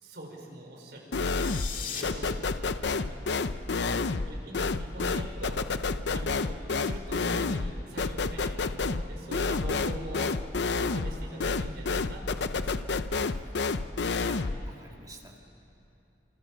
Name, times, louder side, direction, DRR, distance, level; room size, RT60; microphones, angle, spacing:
voice 1, 0.0-2.7 2.9-5.6 6.1-12.8 14.2-14.4, right 1 dB, 70° right, 1 dB, 5.1 m, -43 dB
sound 1, 1.1-14.6, left 4 dB, 75° left, 0.7 m, -29 dB
sound 2, 1.2-2.0, left 8 dB, 50° left, 2.3 m, -37 dB
voice 2, 3.8-4.3 13.1-13.9 14.7-15.4, right 1 dB, 20° right, 1 dB, 2.3 m, -51 dB
28.5 x 24.5 x 7.4 m, 2.9 s
head